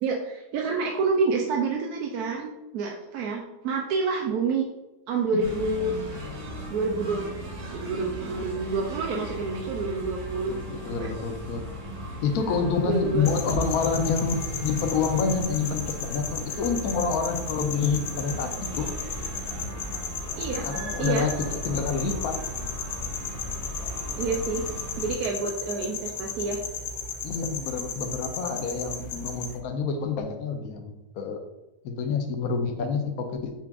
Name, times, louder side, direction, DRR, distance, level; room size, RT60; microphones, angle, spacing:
voice 1, 0.0-4.6 5.1-5.9 6.7-7.2 7.7-10.6 10.9-11.1 12.8-13.3 20.4-20.7 21.0-21.3 24.1-24.6 25.0-26.6, right 4 dB, 70° right, 0 dB, 1.0 m, -28 dB
sound 1, 5.4-25.1, equal, 50° right, 1.2 m, -37 dB
voice 2, 10.5-11.6 12.2-18.9 20.6-22.4 27.2-31.4 31.8-33.5, left 5 dB, 65° left, 5 dB, 1.0 m, -28 dB
sound 2, 13.3-29.6, left 4 dB, 85° left, 1.3 m, -35 dB
5.8 x 2.4 x 3.5 m, 1.0 s
omnidirectional pair, 1.9 m